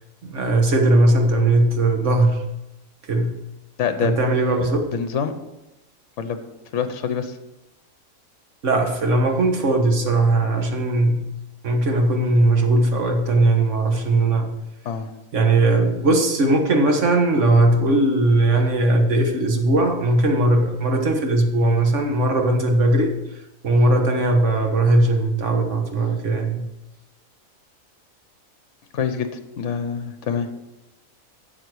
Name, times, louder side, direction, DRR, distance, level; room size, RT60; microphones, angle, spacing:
voice 1, 0.2-2.4 3.1-3.3 4.0-4.9 8.6-11.2 11.6-14.5 15.3-23.1 23.6-26.7, right 2 dB, 60° right, 4 dB, 1.7 m, -19 dB
voice 2, 3.8-4.1 4.9-5.3 6.2-6.4 6.7-7.4 14.8-15.1 28.9-29.3 29.6-30.5, left 7 dB, 60° left, 9 dB, 1.2 m, -25 dB
12.0 x 7.4 x 4.8 m, 0.95 s
omnidirectional pair, 1.4 m